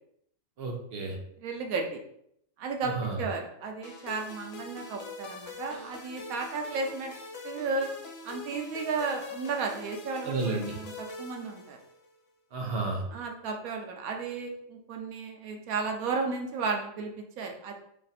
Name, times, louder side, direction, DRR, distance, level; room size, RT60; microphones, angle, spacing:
voice 1, 0.6-1.2 2.8-3.2 10.2-10.8 12.5-13.0, right 3 dB, 50° right, 0 dB, 0.9 m, -32 dB
voice 2, 1.4-2.0 2.6-7.1 7.4-7.9 8.2-11.8 13.1-17.7, right 4 dB, 85° right, 2 dB, 1.0 m, -34 dB
sound 1, 3.8-12.1, left 2 dB, 75° left, 1.1 m, -43 dB
3.2 x 2.4 x 4.0 m, 0.71 s
omnidirectional pair, 1.4 m